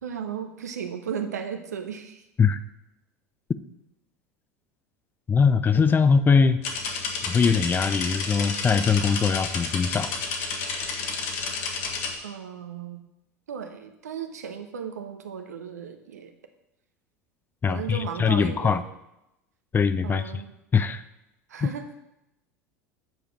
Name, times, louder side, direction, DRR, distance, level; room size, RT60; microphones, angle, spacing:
voice 1, 0.0-2.2 12.2-13.0 13.5-16.3 17.7-18.8 20.0-20.5 21.5-22.0, right 7 dB, 80° right, 7 dB, 0.9 m, -35 dB
voice 2, 5.3-6.6 7.3-10.2 17.6-18.8 19.7-20.4 20.7-21.0 21.6-21.7, left 5 dB, 25° left, 12 dB, 0.6 m, -21 dB
sound 1, 6.6-12.2, left 4 dB, 60° left, 1.6 m, -31 dB
9.1 x 5.1 x 5.9 m, 0.88 s
hypercardioid pair, 80°, 9 cm